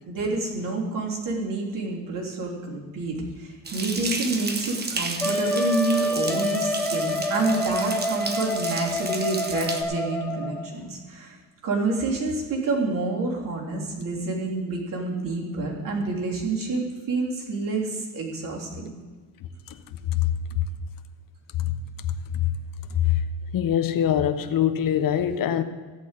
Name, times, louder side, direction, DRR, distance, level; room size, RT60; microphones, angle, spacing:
voice 1, 0.1-11.4 11.6-18.9, right 3 dB, 45° right, -3 dB, 3.2 m, -28 dB
sound 1, 3.6-9.8, right 3 dB, 20° right, 1.2 m, -33 dB
Wind instrument woodwind instrument, 5.2-10.7, left 1 dB, 5° left, 1.4 m, -27 dB
voice 2, 23.5-25.6, left 9 dB, 45° left, 10 dB, 1.0 m, -23 dB
16.5 x 8.0 x 4.1 m, 1.4 s
cardioid pair, 105°, 45 cm